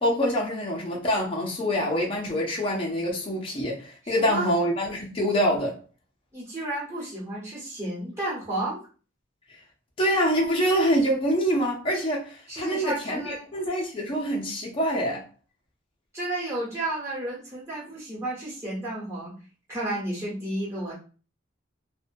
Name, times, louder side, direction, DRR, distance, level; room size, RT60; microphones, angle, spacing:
voice 1, 0.0-5.8 10.0-15.3, equal, 30° left, 0.5 m, -25 dB
voice 2, 4.0-4.5 6.3-8.8 12.5-13.5 16.1-19.3 19.7-20.9, right 1 dB, 15° right, 1.2 m, -32 dB
2.5 x 2.1 x 2.5 m
head